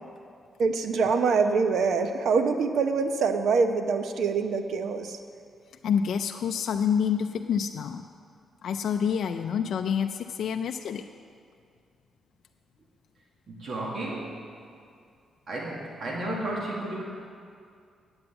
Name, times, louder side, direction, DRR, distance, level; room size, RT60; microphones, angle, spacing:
voice 1, 0.6-5.2, right 5 dB, 70° right, 7 dB, 0.8 m, -24 dB
voice 2, 5.8-8.0 8.6-11.0, left 7 dB, 70° left, 5 dB, 0.4 m, -27 dB
voice 3, 13.5-14.4 15.5-17.0, right 1 dB, 50° right, -3 dB, 1.8 m, -33 dB
8.8 x 7.9 x 8.8 m, 2.3 s
cardioid pair, 110°, 0 cm